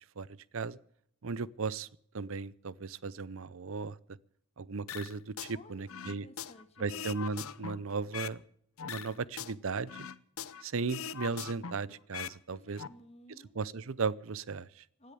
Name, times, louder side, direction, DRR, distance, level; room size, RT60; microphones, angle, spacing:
voice 1, 1.2-1.9 2.1-4.2 4.6-6.3 6.8-8.4 8.8-10.1 10.6-12.8 13.6-14.8, right 4 dB, 65° right, 21 dB, 0.6 m, -36 dB
sound 1, 4.9-5.5 5.9-8.4 8.8-10.6 10.9-12.4 12.6-12.9, left 7 dB, 70° left, 0.8 m, -41 dB
voice 2, 5.5-7.1 12.5-13.5 15.0-15.1, left 1 dB, 30° left, 7 dB, 1.7 m, -56 dB
17.0 x 10.0 x 6.9 m, 0.68 s
head